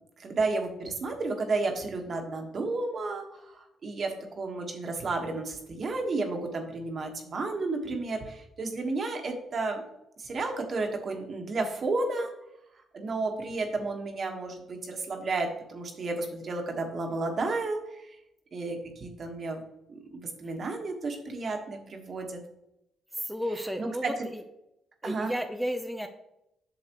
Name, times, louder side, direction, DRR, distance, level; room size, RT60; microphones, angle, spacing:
voice 1, 0.2-9.8 10.2-12.3 12.9-18.0 18.5-19.6 19.9-22.4 23.8-24.1 25.0-25.3, right 3 dB, 45° right, 3 dB, 1.4 m, -32 dB
voice 2, 23.1-24.4 25.0-26.1, equal, ahead, 5 dB, 0.6 m, -33 dB
8.0 x 6.4 x 3.0 m, 0.84 s
cardioid pair, 90°, 0 cm